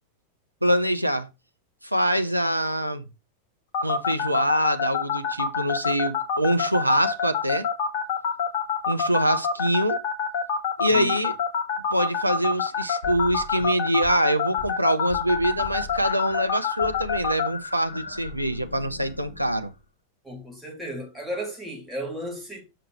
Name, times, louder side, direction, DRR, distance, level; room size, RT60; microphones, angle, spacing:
voice 1, 0.6-1.3 1.8-3.0 3.8-7.7 8.9-10.0 10.8-11.4 11.9-19.7, equal, 90° right, 0.5 m, -24 dB
sound 1, 3.7-17.5, left 7 dB, 50° left, 1.1 m, -25 dB
sound 2, 13.0-14.2 14.5-14.8 15.1-19.8, left 4 dB, 80° left, 0.9 m, -39 dB
voice 2, 20.2-22.6, equal, 5° right, 3.0 m, -34 dB
6.5 x 5.8 x 3.2 m
figure-of-eight pair, 90°, 0 cm